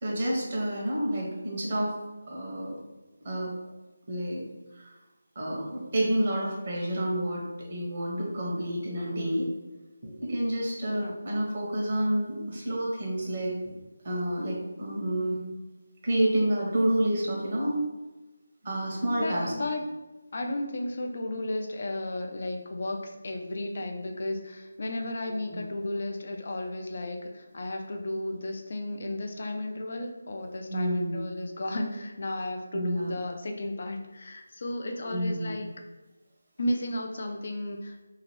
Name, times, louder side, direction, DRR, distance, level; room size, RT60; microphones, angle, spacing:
voice 1, 0.0-1.9 2.3-2.8 3.2-3.5 4.1-4.4 4.7-4.9 5.3-9.5 10.0-13.7 14.0-15.4 16.0-17.8 18.6-19.5 25.2-25.7 30.7-31.2 32.7-33.1 35.1-35.5, right 1 dB, 40° right, -3 dB, 0.9 m, -29 dB
voice 2, 19.2-19.8 20.3-35.7 36.6-38.0, left 1 dB, 50° left, 3 dB, 0.5 m, -34 dB
2.8 x 2.5 x 3.1 m, 1.1 s
figure-of-eight pair, 160°, 0 cm